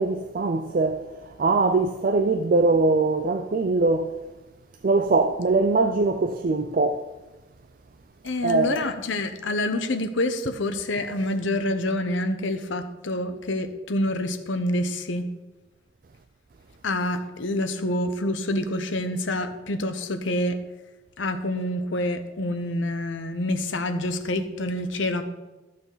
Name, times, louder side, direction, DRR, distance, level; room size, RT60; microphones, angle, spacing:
voice 1, 0.0-4.1 4.8-7.0 8.4-8.8, right 3 dB, 45° right, 0.4 m, -22 dB
voice 2, 8.2-15.3 16.8-20.5 21.2-25.2, left 1 dB, 80° left, 0.9 m, -27 dB
13.5 x 6.8 x 4.0 m
head